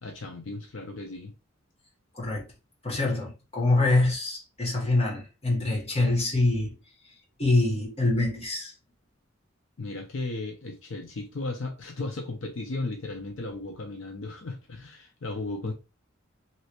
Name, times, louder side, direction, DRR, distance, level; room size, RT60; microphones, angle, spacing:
voice 1, 0.0-1.3 9.8-15.7, left 2 dB, 70° left, 0.6 m, -35 dB
voice 2, 2.1-2.5 2.8-6.8 7.4-8.7, left 2 dB, 30° left, 1.2 m, -25 dB
3.2 x 2.8 x 2.9 m
head